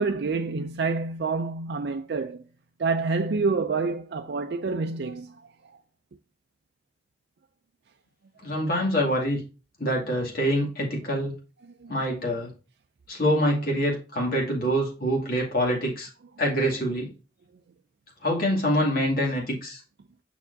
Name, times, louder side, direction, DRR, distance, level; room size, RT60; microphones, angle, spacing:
voice 1, 0.0-2.4 2.8-5.3 11.8-11.9, right 4 dB, 65° right, 0.4 m, -27 dB
voice 2, 8.4-9.4 9.8-11.3 11.9-12.5 13.1-16.1 16.4-17.1 18.2-19.8, equal, 55° left, 2.3 m, -25 dB
6.8 x 6.0 x 2.6 m
head